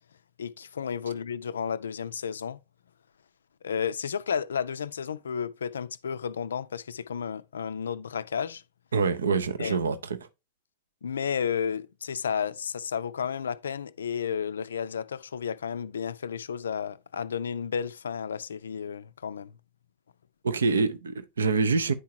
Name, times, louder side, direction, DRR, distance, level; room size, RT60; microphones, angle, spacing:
voice 1, 0.4-2.6 3.6-8.6 9.6-9.8 11.0-19.5, left 7 dB, 70° left, 0.3 m, -32 dB
voice 2, 8.9-10.0 20.4-21.9, right 4 dB, 70° right, 0.6 m, -25 dB
9.8 x 4.6 x 2.8 m
figure-of-eight pair, 90°, 0 cm